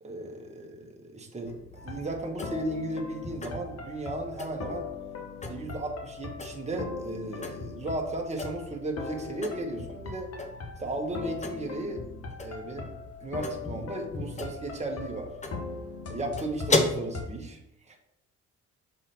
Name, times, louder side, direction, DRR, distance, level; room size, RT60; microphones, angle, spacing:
voice 1, 0.0-4.9 5.5-10.3 10.8-12.0 12.4-12.9 13.2-15.3 16.1-17.6 17.9-18.0, right 2 dB, 20° right, 1 dB, 1.4 m, -35 dB
sound 1, 1.5-16.9, left 3 dB, 25° left, 0.8 m, -37 dB
sound 2, 1.8-17.3, left 4 dB, 55° left, 1.3 m, -40 dB
6.6 x 3.7 x 4.3 m, 0.82 s
cardioid pair, 90°, 30 cm